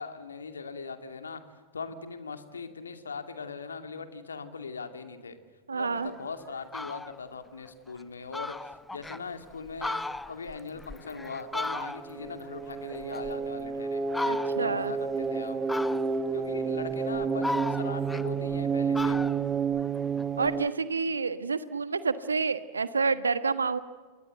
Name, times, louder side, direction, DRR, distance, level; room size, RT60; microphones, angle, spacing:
voice 1, 0.0-1.4 1.7-5.4 5.7-14.0 14.6-15.6 16.3-19.2, left 5 dB, 75° left, 8 dB, 2.5 m, -40 dB
voice 2, 5.7-6.1 14.3-14.9 20.4-23.8, right 4 dB, 75° right, 13 dB, 1.4 m, -28 dB
Fowl, 6.1-6.2 6.6-7.2 7.6-7.7 8.0-8.1 8.3-9.2 9.6-12.3 12.6-13.7 14.1-14.8 15.7-16.3 16.9-18.6 18.9-20.5, left 2 dB, 5° left, 0.8 m, -36 dB
sound 1, 11.2-20.7, right 5 dB, 20° right, 1.1 m, -30 dB
29.5 x 22.5 x 8.0 m, 1.5 s
figure-of-eight pair, 90°, 0 cm